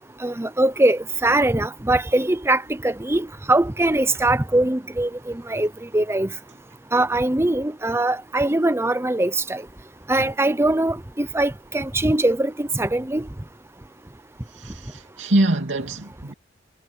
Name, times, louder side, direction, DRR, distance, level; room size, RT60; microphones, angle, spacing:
voice 1, 0.2-6.3 6.9-9.6 10.1-13.3, right 2 dB, 15° right, 0.8 m, -22 dB
voice 2, 14.5-16.3, right 1 dB, 85° right, 2.6 m, -24 dB
head